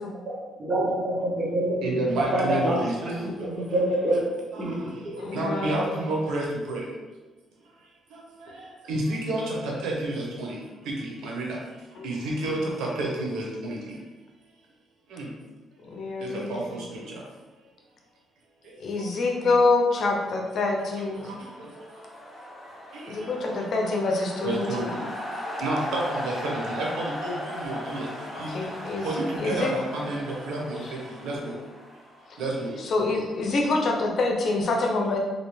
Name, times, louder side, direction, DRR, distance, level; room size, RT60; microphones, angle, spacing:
voice 1, 0.6-2.8 3.1-4.2 4.6-4.8, right 1 dB, 40° right, -5 dB, 1.2 m, -26 dB
voice 2, 1.8-3.1 3.5-4.2 4.5-4.7 5.3-6.9 8.6-10.6 10.9-11.5 12.0-13.8 15.1-15.3 16.2-17.0 19.4-19.5 24.4-25.0 25.6-28.1 28.4-28.5 29.0-30.8 31.2-31.6 32.4-32.7, right 2 dB, 80° right, -2 dB, 0.9 m, -30 dB
voice 3, 5.2-5.9 12.0-12.1 15.9-16.5 18.8-21.3 23.1-24.9 28.5-29.1 29.4-29.7 32.9-35.2, left 3 dB, 60° left, 1 dB, 0.6 m, -26 dB
sound 1, 20.6-32.6, left 1 dB, 15° left, 1.2 m, -37 dB
3.2 x 2.7 x 3.2 m, 1.2 s
cardioid pair, 90°, 0 cm